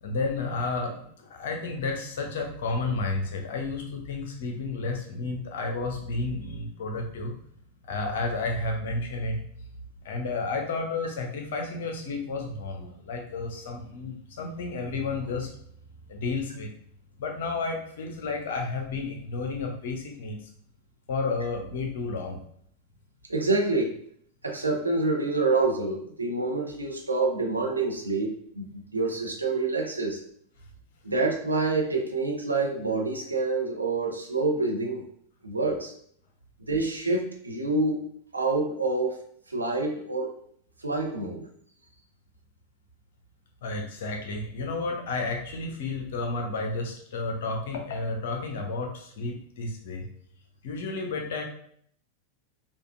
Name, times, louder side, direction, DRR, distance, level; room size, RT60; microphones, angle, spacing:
voice 1, 0.0-7.3 7.9-9.4 10.0-15.5 16.1-16.7 17.2-20.5 21.1-22.4 43.6-50.0 50.6-51.4, left 3 dB, 55° left, 3 dB, 0.7 m, -31 dB
voice 2, 23.3-24.0 24.4-30.2 31.0-35.0 35.4-35.9 36.7-38.0 38.3-40.4 40.8-41.4, right 3 dB, 80° right, 1 dB, 0.7 m, -27 dB
5.1 x 2.4 x 2.4 m, 0.64 s
figure-of-eight pair, 90°, 0 cm